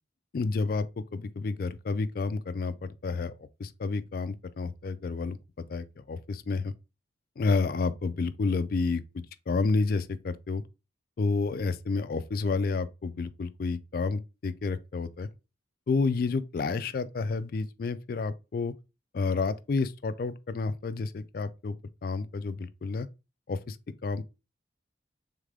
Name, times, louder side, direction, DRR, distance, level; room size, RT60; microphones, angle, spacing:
voice 1, 0.3-5.4 5.7-6.7 7.4-9.0 9.5-10.6 11.2-15.3 15.9-18.7 19.1-21.8 22.0-23.1 23.5-23.8 24.0-24.2, left 4 dB, 50° left, 0.3 m, -30 dB
3.6 x 3.4 x 3.6 m
head